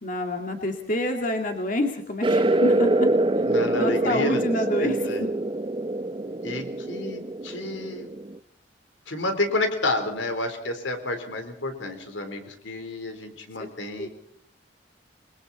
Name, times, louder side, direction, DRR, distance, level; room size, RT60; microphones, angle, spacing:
voice 1, 0.0-2.9 3.8-5.3 13.6-13.7 14.0-14.1, left 1 dB, 45° left, 4 dB, 2.4 m, -28 dB
sound 1, 2.2-8.4, right 1 dB, 25° right, 0.7 m, -25 dB
voice 2, 3.4-4.4 4.8-5.3 6.4-8.1 9.1-14.1, left 2 dB, 85° left, 7 dB, 3.9 m, -30 dB
29.0 x 21.5 x 4.2 m, 0.63 s
head